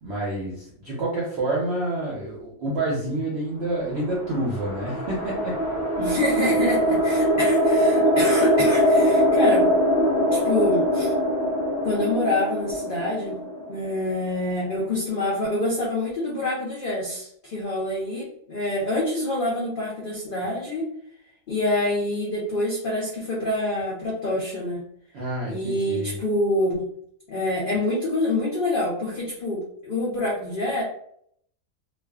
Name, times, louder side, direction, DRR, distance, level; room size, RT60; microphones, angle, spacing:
voice 1, 0.0-5.6 25.1-26.2, right 1 dB, 60° right, -5 dB, 0.7 m, -28 dB
sound 1, 3.9-14.3, equal, 30° right, 0.3 m, -22 dB
voice 2, 6.0-9.7 10.3-11.1 11.8-13.4 13.7-20.9 21.5-24.9 25.4-26.9 27.3-30.8, left 1 dB, 75° left, -5 dB, 0.4 m, -26 dB
2.4 x 2.2 x 2.3 m, 0.68 s
omnidirectional pair, 1.6 m